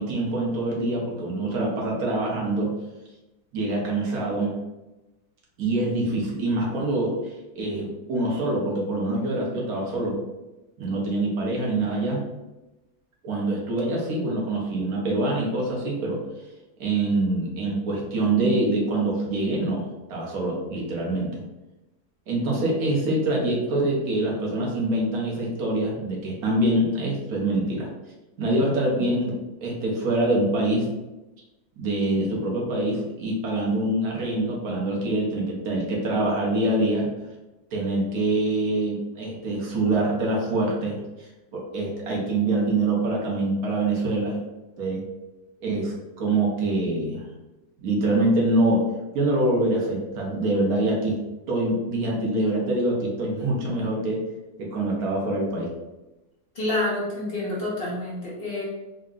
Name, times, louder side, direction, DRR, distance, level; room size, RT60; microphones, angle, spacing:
voice 1, 0.0-2.7 3.5-4.5 5.6-10.2 10.8-12.2 13.2-16.2 16.8-21.4 22.3-27.9 28.4-30.9 31.8-37.1 37.7-44.4 44.8-45.0 45.6-47.2 47.8-48.9 49.1-51.2 51.5-54.2 54.6-55.7, right 2 dB, 70° right, -3 dB, 1.3 m, -25 dB
voice 2, 56.5-58.7, left 1 dB, 45° left, -6 dB, 1.0 m, -28 dB
3.5 x 2.2 x 3.7 m, 1.0 s
omnidirectional pair, 1.7 m